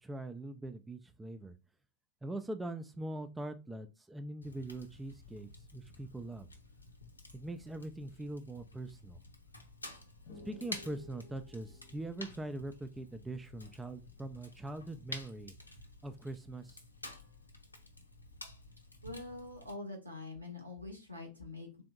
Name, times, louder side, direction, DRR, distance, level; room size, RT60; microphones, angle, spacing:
voice 1, 0.0-1.5 2.2-6.5 7.3-9.2 10.4-15.5 16.0-16.8, right 2 dB, 10° right, 8 dB, 0.3 m, -42 dB
Fire, 4.4-19.7, left 2 dB, 80° left, 0.6 m, -51 dB
sound 1, 10.3-13.8, left 3 dB, 50° left, 0.8 m, -56 dB
voice 2, 19.0-21.8, left 2 dB, 85° right, 1 dB, 1.3 m, -45 dB
3.7 x 3.4 x 2.2 m, 0.30 s
figure-of-eight pair, 90°, 0 cm